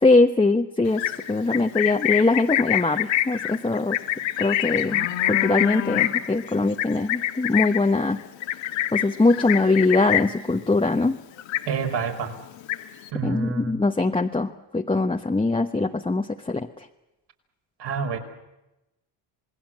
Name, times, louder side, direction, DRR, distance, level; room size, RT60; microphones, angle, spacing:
voice 1, 0.0-1.0 1.3-4.0 4.4-8.2 8.9-11.2 13.2-16.7, left 3 dB, 10° left, 3 dB, 1.0 m, -22 dB
Livestock farm animals working animals, 0.9-10.5 10.8-11.1 11.4-12.1 12.4-13.1, left 12 dB, 75° left, 1.8 m, -26 dB
voice 2, 11.7-12.4 13.1-13.7 17.8-18.2, right 5 dB, 65° right, 3 dB, 5.2 m, -28 dB
27.5 x 20.0 x 7.4 m, 0.96 s
cardioid pair, 110°, 45 cm